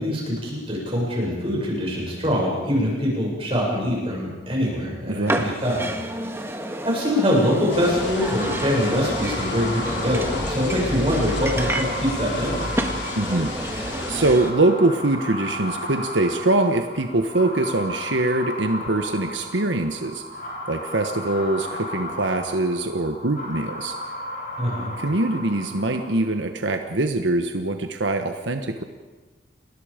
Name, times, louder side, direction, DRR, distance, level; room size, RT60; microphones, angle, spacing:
voice 1, 0.0-5.9 6.8-12.7 24.6-24.9, equal, 30° right, -3 dB, 7.2 m, -24 dB
voice 2, 5.1-5.5 13.1-13.5 14.1-20.2 20.7-23.9 25.0-28.8, right 2 dB, 85° right, 6 dB, 1.3 m, -23 dB
sound 1, 5.3-14.5, right 1 dB, 15° right, 1.6 m, -30 dB
sound 2, 7.5-26.4, left 1 dB, 50° left, 5.7 m, -35 dB
sound 3, 7.7-14.3, left 2 dB, 80° left, 4.3 m, -32 dB
30.0 x 20.5 x 5.2 m, 1.3 s
head